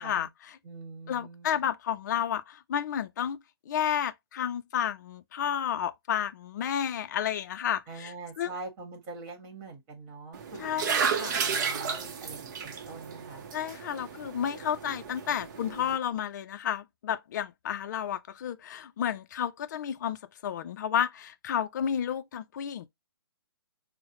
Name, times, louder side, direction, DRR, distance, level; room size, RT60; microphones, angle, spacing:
voice 1, 0.0-0.6 1.1-3.4 3.7-8.5 10.6-11.4 13.5-20.2 20.4-22.9, left 9 dB, 45° left, 0.4 m, -31 dB
voice 2, 0.6-1.6 7.9-13.5, right 3 dB, 30° right, 1.4 m, -44 dB
sound 1, 10.3-16.0, right 6 dB, 45° right, 0.7 m, -33 dB
4.6 x 2.0 x 2.9 m
hypercardioid pair, 145°, 13 cm